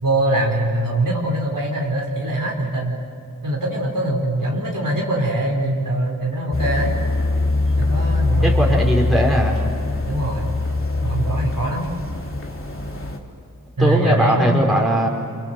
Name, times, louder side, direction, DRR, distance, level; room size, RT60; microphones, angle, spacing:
voice 1, 0.0-3.0 3.4-6.9 7.8-8.8 10.1-10.5 11.0-11.9 13.8-14.9, right 1 dB, 75° right, -2 dB, 4.6 m, -22 dB
sound 1, 6.5-13.2, left 2 dB, 40° left, 3.3 m, -22 dB
voice 2, 8.4-9.6 13.8-15.1, equal, ahead, -2 dB, 4.7 m, -19 dB
29.0 x 26.5 x 7.8 m, 2.4 s
wide cardioid pair, 70°, 34 cm